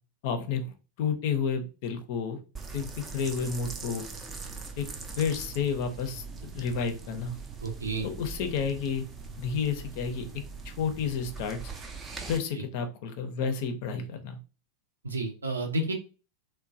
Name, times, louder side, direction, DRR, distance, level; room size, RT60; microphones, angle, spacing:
voice 1, 0.2-2.4 2.7-4.1 4.8-4.9 5.2-7.4 8.0-9.0 9.4-10.3 10.6-11.6 12.3-14.4, left 6 dB, 50° left, 7 dB, 0.5 m, -31 dB
sound 1, 2.6-12.4, right 4 dB, 20° right, 0.5 m, -41 dB
voice 2, 7.6-8.1 15.0-15.9, right 2 dB, 75° right, 3 dB, 0.6 m, -30 dB
3.0 x 2.1 x 2.6 m, 0.33 s
figure-of-eight pair, 90°, 0 cm